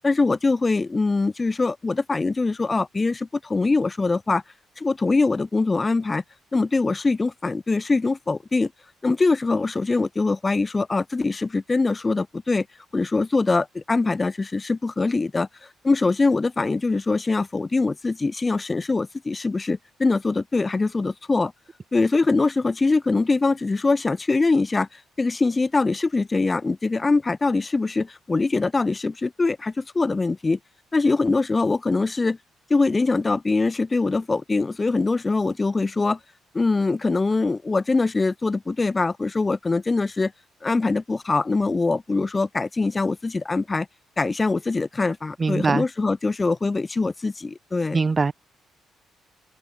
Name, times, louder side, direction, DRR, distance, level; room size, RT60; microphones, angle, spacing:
voice 1, 0.0-4.4 4.8-6.2 6.5-8.7 9.0-12.7 12.9-15.5 15.8-21.5 21.9-24.9 25.2-30.6 30.9-32.4 32.7-36.2 36.5-40.3 40.6-43.9 44.2-48.0, left 3 dB, 25° left, 1.1 m, -23 dB
voice 2, 45.4-45.8 47.9-48.3, right 4 dB, 30° right, 0.7 m, -21 dB
open air
cardioid pair, 90°, 0 cm